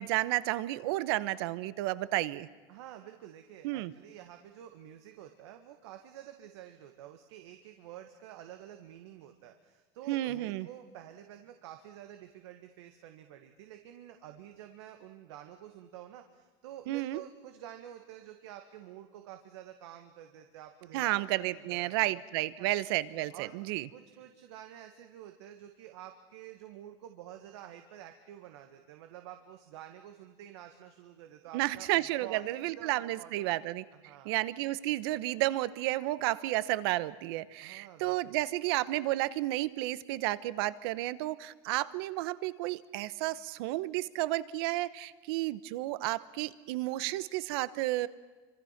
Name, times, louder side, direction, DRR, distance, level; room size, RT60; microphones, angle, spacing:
voice 1, 0.0-2.5 3.6-3.9 10.1-10.7 16.9-17.2 20.9-23.9 31.5-33.8 34.2-48.1, right 17 dB, 65° right, 17 dB, 1.0 m, -32 dB
voice 2, 2.7-22.2 22.6-22.8 23.3-23.6 23.9-33.6 33.9-34.4 37.6-38.4, right 11 dB, 90° right, 6 dB, 1.9 m, -49 dB
27.5 x 25.5 x 5.9 m, 1.3 s
cardioid pair, 175°, 14 cm